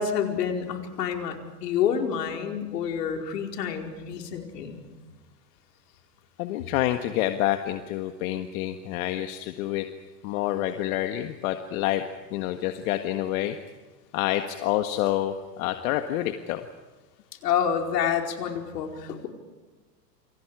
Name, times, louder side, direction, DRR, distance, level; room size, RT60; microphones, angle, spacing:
voice 1, 0.0-1.4 1.6-4.8 17.4-19.3, left 8 dB, 70° left, 3 dB, 4.8 m, -28 dB
voice 2, 6.4-9.9 10.2-12.0 12.3-13.6 14.1-16.6, left 13 dB, 55° left, 7 dB, 1.8 m, -28 dB
28.0 x 27.0 x 4.9 m, 1.3 s
hypercardioid pair, 110°, 50 cm